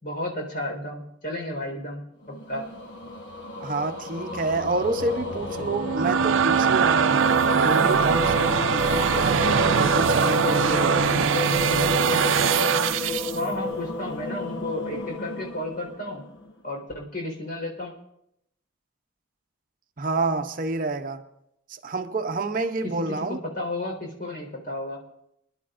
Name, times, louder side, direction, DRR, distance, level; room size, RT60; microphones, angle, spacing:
voice 1, 0.0-2.0 2.5-2.7 13.3-16.2 16.6-17.9 22.8-25.0, left 1 dB, 50° left, 4.2 m, -32 dB
sound 1, 2.2-16.7, left 3 dB, 70° left, 1.2 m, -31 dB
voice 2, 3.6-7.3 7.6-11.8 20.0-21.2 21.7-23.4, right 3 dB, 45° right, 0.7 m, -29 dB
sound 2, 5.7-13.4, right 6 dB, 85° right, 0.5 m, -22 dB
26.0 x 11.0 x 2.5 m
head